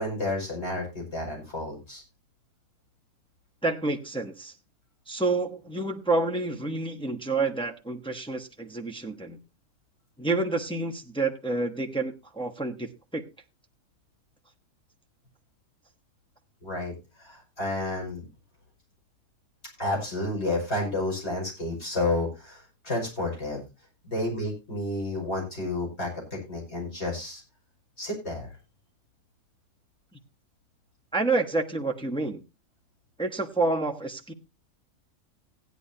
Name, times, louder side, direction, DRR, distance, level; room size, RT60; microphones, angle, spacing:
voice 1, 0.0-2.0 16.6-16.9 17.2-18.3 19.8-23.6 24.0-27.4 28.0-28.5, left 2 dB, 55° left, -1 dB, 6.1 m, -31 dB
voice 2, 3.6-4.5 5.1-9.4 10.2-13.2 31.1-32.4 33.2-34.3, right 3 dB, 5° left, 2 dB, 0.9 m, -28 dB
16.5 x 10.0 x 2.8 m, 0.26 s
omnidirectional pair, 1.4 m